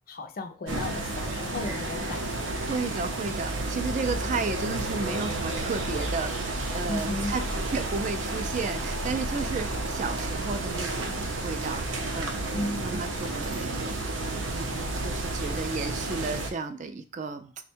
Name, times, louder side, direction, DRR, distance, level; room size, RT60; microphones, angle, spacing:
voice 1, 0.1-2.7 6.9-7.3 12.5-13.0, left 2 dB, 50° left, 6 dB, 0.4 m, -35 dB
sound 1, 0.7-16.5, right 2 dB, 85° right, 0.6 m, -31 dB
voice 2, 2.6-11.9 12.1-14.2 14.5-17.5, right 4 dB, 40° right, 9 dB, 0.3 m, -33 dB
3.5 x 2.2 x 4.3 m, 0.39 s
head